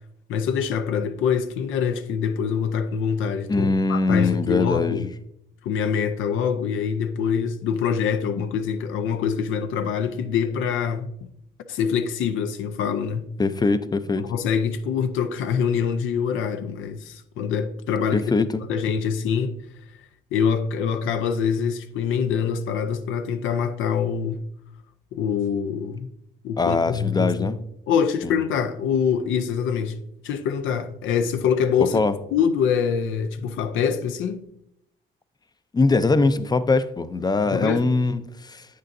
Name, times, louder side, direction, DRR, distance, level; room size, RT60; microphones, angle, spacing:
voice 1, 0.3-5.1 5.6-11.1 11.7-13.3 14.2-19.6 20.3-24.4 25.1-26.1 26.4-27.6 27.9-30.0 30.2-32.0 32.3-34.4 37.5-37.9, left 7 dB, 85° left, 0.5 m, -25 dB
voice 2, 3.5-5.1 13.4-14.3 18.1-18.6 26.6-27.6 28.2-28.4 31.9-32.1 35.7-38.7, left 3 dB, 20° left, 0.4 m, -22 dB
8.6 x 6.6 x 2.6 m
cardioid pair, 90°, 20 cm